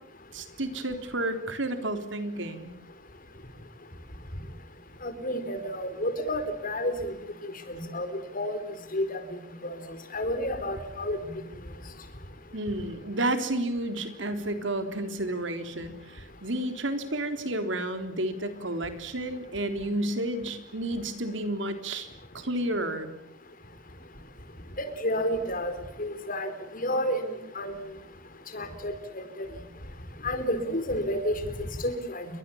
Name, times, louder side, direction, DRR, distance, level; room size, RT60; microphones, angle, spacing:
voice 1, 0.3-2.7 12.5-22.1 22.3-23.2, right 1 dB, 70° right, 8 dB, 3.6 m, -31 dB
voice 2, 5.0-7.1 7.4-8.1 8.3-8.6 8.9-9.2 9.6-9.8 10.1-11.2 24.8-25.7 26.0-26.5 26.7-27.3 27.5-27.7 28.5-29.5 30.2-31.3 31.8-32.2, left 1 dB, 45° left, 10 dB, 4.6 m, -30 dB
30.0 x 23.5 x 7.2 m, 0.81 s
head